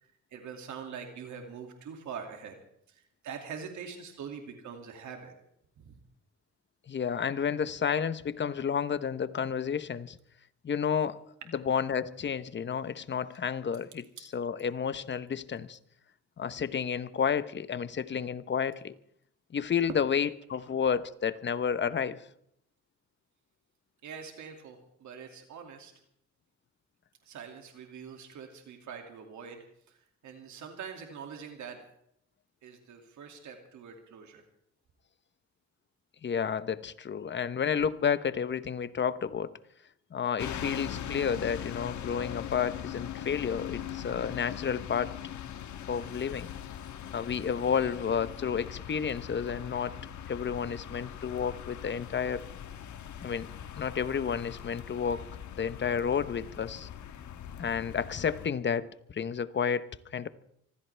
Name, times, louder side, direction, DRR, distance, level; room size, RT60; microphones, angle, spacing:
voice 1, 0.3-2.6 2.9-5.3 5.8-5.9 24.0-25.9 27.3-29.6 30.2-31.8 32.6-34.4, right 6 dB, 70° right, 2.4 m, -44 dB
voice 2, 6.9-10.2 10.6-11.2 11.5-15.8 16.4-18.9 19.5-22.2 36.2-39.5 40.1-45.2 45.9-46.5 47.1-50.0 50.3-52.5 53.2-55.2 55.6-56.9 57.6-60.3, left 7 dB, 40° left, 0.9 m, -31 dB
sound 1, 40.4-58.5, left 9 dB, 75° left, 1.4 m, -41 dB
25.0 x 15.5 x 3.4 m
cardioid pair, 90°, 30 cm